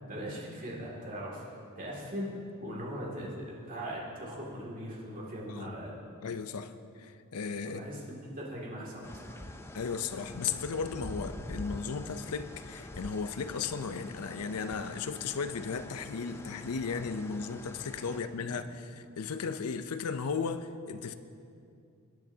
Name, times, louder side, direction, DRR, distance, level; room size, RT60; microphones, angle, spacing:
voice 1, 0.1-1.4 1.8-2.3 2.6-6.0 7.6-9.5, equal, 40° right, -4 dB, 2.3 m, -40 dB
voice 2, 6.2-6.7 7.0-7.8 9.7-21.1, left 5 dB, 80° left, 10 dB, 0.5 m, -35 dB
sound 1, 9.0-18.2, left 1 dB, 10° left, 0.4 m, -45 dB
19.5 x 9.2 x 2.8 m, 2.5 s
head